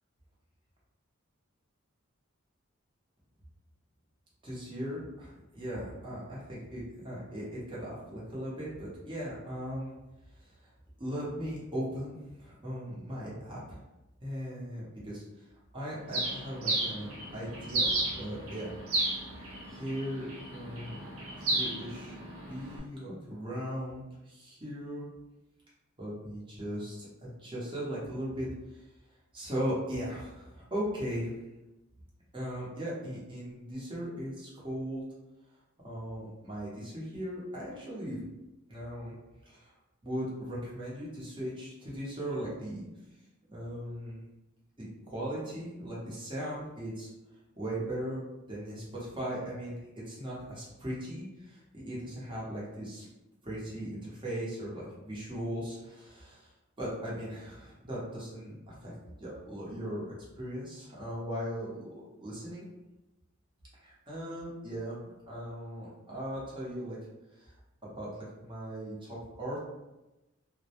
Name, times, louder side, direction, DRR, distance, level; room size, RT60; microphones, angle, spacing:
voice 1, 4.4-9.9 11.0-13.8 14.2-15.2 15.7-17.9 18.2-18.7 19.3-20.2 20.5-21.0 21.4-22.1 22.5-25.1 26.0-27.1 27.4-28.5 29.3-31.3 32.3-35.0 35.8-38.2 38.7-39.1 39.5-39.7 40.0-42.8 43.5-44.2 44.8-47.1 47.6-48.2 48.5-49.7 50.0-53.1 53.4-56.5 56.8-58.9 59.2-60.1 60.4-62.7 63.8-67.0 67.4-67.5 67.8-68.1 68.4-69.7, equal, 25° right, -7 dB, 0.7 m, -38 dB
Bird, 16.1-22.8, right 2 dB, 75° right, 0.6 m, -34 dB
2.1 x 2.0 x 2.8 m, 1.0 s
head